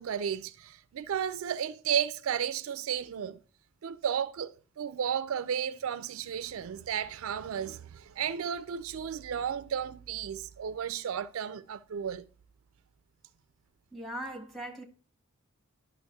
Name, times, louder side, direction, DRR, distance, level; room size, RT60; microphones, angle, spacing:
voice 1, 0.0-3.4 3.8-12.2, right 8 dB, 70° right, 0.4 m, -33 dB
voice 2, 13.9-14.8, right 1 dB, ahead, 1.0 m, -39 dB
11.0 x 5.9 x 2.3 m
head